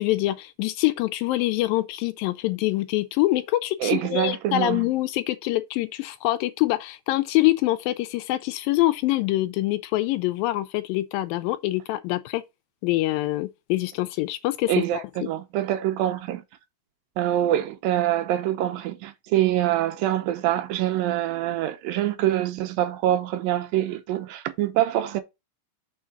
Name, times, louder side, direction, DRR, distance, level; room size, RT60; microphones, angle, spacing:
voice 1, 0.0-12.4 12.8-15.0, left 17 dB, 80° left, 2.2 m, -25 dB
voice 2, 3.8-4.8 14.7-16.4 17.2-25.2, right 12 dB, 80° right, 2.5 m, -25 dB
6.3 x 3.7 x 5.7 m
omnidirectional pair, 4.2 m